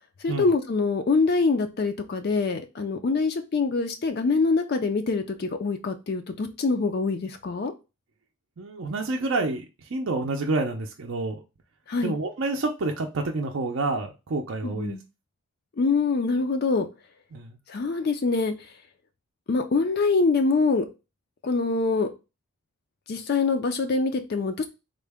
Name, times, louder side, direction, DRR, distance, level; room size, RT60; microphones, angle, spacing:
voice 1, 0.2-7.7 11.9-12.1 14.6-15.0 15.8-16.9 17.7-18.7 19.5-20.9 21.4-22.1 23.1-24.7, left 4 dB, 45° left, 0.4 m, -24 dB
voice 2, 8.6-11.4 12.0-14.9 17.3-17.6, right 2 dB, 60° right, 0.5 m, -28 dB
3.7 x 2.1 x 3.4 m
head